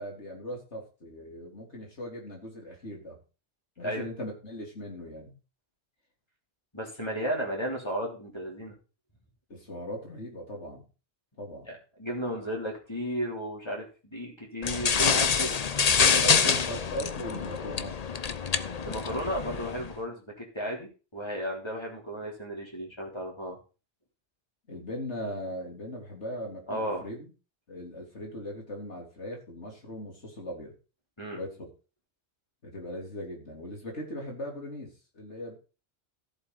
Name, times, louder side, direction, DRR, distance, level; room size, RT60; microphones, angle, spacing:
voice 1, 0.0-3.2 3.8-5.3 9.5-10.8 11.4-11.7 16.2-18.0 24.7-27.3 27.7-30.7 31.3-31.7 32.6-35.6, left 1 dB, 75° left, 0 dB, 3.9 m, -39 dB
voice 2, 6.7-8.8 11.7-15.6 15.9-16.5 18.8-23.6 26.7-27.1 31.2-31.4, equal, 25° left, -2 dB, 3.5 m, -34 dB
sound 1, 14.6-19.9, left 6 dB, 40° left, 0.7 m, -26 dB
14.0 x 7.7 x 4.1 m, 0.34 s
omnidirectional pair, 1.2 m